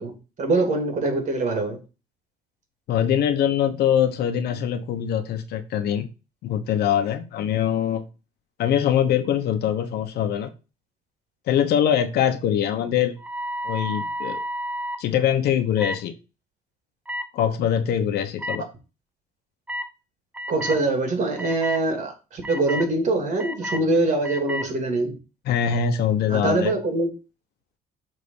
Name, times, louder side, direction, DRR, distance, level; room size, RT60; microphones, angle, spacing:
voice 1, 0.0-1.8 20.5-25.2 26.3-27.1, right 2 dB, 45° right, 2.8 m, -24 dB
voice 2, 2.9-6.1 6.4-8.0 8.6-10.5 11.5-13.2 13.6-14.4 15.0-16.1 17.3-18.7 25.5-26.7, left 9 dB, 70° left, 1.1 m, -23 dB
sound 1, 13.2-15.0 15.8-16.0 17.1-17.3 18.4-18.6 19.7-19.9 20.3-20.8 21.4-21.8 22.4-22.9 23.4-23.8 24.2-24.7, equal, 10° right, 0.6 m, -31 dB
6.7 x 3.7 x 5.5 m
cardioid pair, 110°, 17 cm